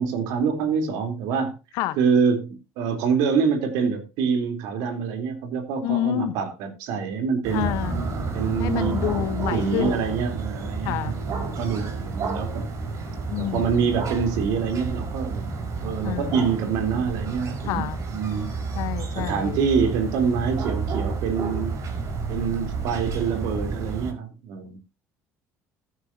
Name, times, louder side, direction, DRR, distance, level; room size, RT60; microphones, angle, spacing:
voice 1, 0.0-1.5 1.9-7.7 8.3-8.9 9.5-12.7 13.3-15.4 15.8-17.8 18.1-18.6 19.2-21.9 22.3-24.8, right 6 dB, 80° right, 3.7 m, -26 dB
voice 2, 5.8-6.3 7.5-8.0 8.6-10.0 10.8-11.1 13.3-13.7 16.0-16.4 17.7-18.0 18.8-19.6, left 14 dB, 80° left, 1.1 m, -28 dB
sound 1, 7.4-24.1, right 4 dB, 55° right, 5.2 m, -30 dB
15.0 x 9.9 x 2.8 m
supercardioid pair, 95°, 6 cm